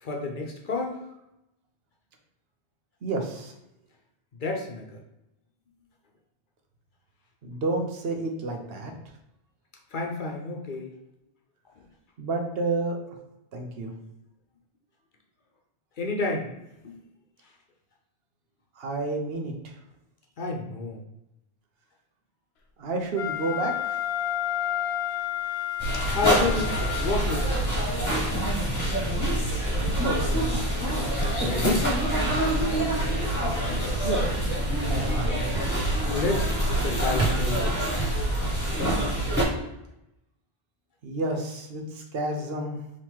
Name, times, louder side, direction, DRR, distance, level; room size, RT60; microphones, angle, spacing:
voice 1, 0.0-1.0 4.3-5.0 9.9-10.9 11.8-11.9 16.0-16.5 16.8-17.0 20.4-21.0 26.1-27.8 31.4-31.9 36.0-38.0, left 3 dB, 55° left, 1 dB, 0.8 m, -30 dB
voice 2, 3.0-3.5 7.4-8.9 12.2-13.0 13.5-13.9 18.8-19.7 22.8-24.0 30.0-30.6 34.0-34.5 34.8-35.5 41.0-42.8, right 2 dB, 70° right, 2 dB, 1.0 m, -30 dB
Wind instrument woodwind instrument, 23.1-27.4, left 11 dB, 90° left, 0.9 m, -31 dB
sound 1, 25.8-39.4, right 1 dB, 20° left, 1.2 m, -26 dB
sound 2, 26.6-39.1, right 4 dB, 35° right, 1.8 m, -40 dB
3.7 x 3.0 x 4.5 m, 0.86 s
omnidirectional pair, 1.1 m